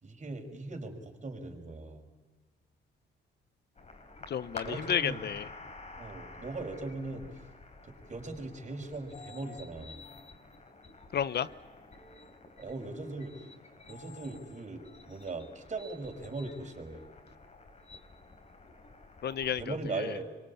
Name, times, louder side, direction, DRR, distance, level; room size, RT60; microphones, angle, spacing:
voice 1, 0.0-2.1 4.6-5.2 6.0-7.4 7.8-10.0 12.6-13.5 13.9-17.1 19.5-20.3, right 3 dB, 35° right, 3 dB, 5.7 m, -39 dB
sound 1, 3.8-19.7, left 3 dB, 35° left, 4.3 m, -50 dB
voice 2, 4.3-5.5 11.1-11.5 19.2-20.2, left 8 dB, 55° left, 15 dB, 0.9 m, -32 dB
26.0 x 23.5 x 8.6 m, 1.3 s
cardioid pair, 90°, 20 cm